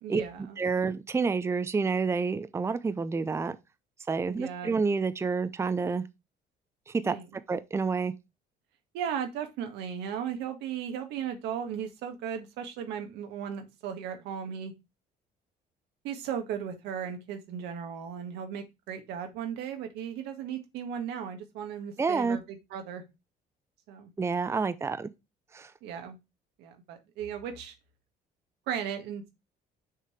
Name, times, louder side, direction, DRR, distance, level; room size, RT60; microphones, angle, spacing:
voice 1, 0.0-0.6 4.3-4.7 7.0-7.3 8.9-14.7 16.0-23.1 23.9-24.1 24.5-24.7 25.8-26.2 26.6-27.7 28.7-29.3, right 8 dB, 90° right, 1.7 m, -36 dB
voice 2, 0.6-3.6 4.1-6.0 6.9-7.2 7.5-8.1 22.0-22.4 24.2-25.1 25.5-25.7, right 4 dB, 15° right, 0.5 m, -28 dB
6.5 x 3.4 x 5.7 m
cardioid pair, 110°, 17 cm